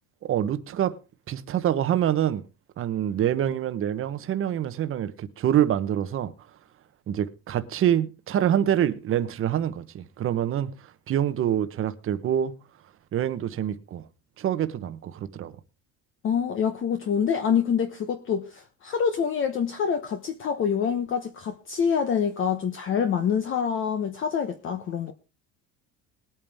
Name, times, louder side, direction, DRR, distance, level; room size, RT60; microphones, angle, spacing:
voice 1, 0.2-0.9 1.3-2.4 2.8-6.3 7.1-12.5 13.1-14.1 14.4-15.5, right 10 dB, 40° right, 1.0 m, -26 dB
voice 2, 16.2-25.1, left 7 dB, 35° left, 1.0 m, -26 dB
20.0 x 8.9 x 3.5 m
cardioid pair, 150°, 34 cm